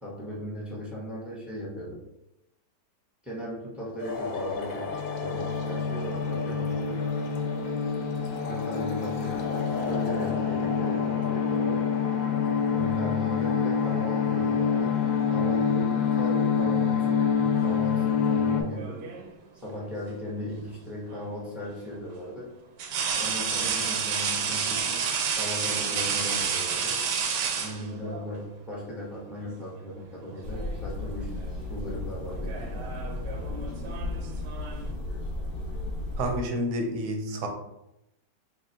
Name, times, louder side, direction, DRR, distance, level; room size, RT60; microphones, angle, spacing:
voice 1, 0.0-2.0 3.2-7.0 8.4-11.8 12.7-15.0 15.3-19.1 19.6-22.5 23.2-25.1 25.3-27.0 27.6-31.3 31.7-33.1, equal, ahead, -5 dB, 0.6 m, -37 dB
sound 1, 4.0-18.6, left 6 dB, 70° left, 0.9 m, -26 dB
sound 2, 18.5-19.3 21.1-21.3 22.8-28.3 29.4-29.7 30.0-30.8 31.1-31.4 32.3-34.9, right 6 dB, 85° right, 1.2 m, -30 dB
sound 3, 30.4-36.4, left 2 dB, 45° left, 1.1 m, -34 dB
voice 2, 36.2-37.5, right 1 dB, 65° right, 3 dB, 0.8 m, -29 dB
3.5 x 2.3 x 4.3 m, 0.87 s
omnidirectional pair, 1.8 m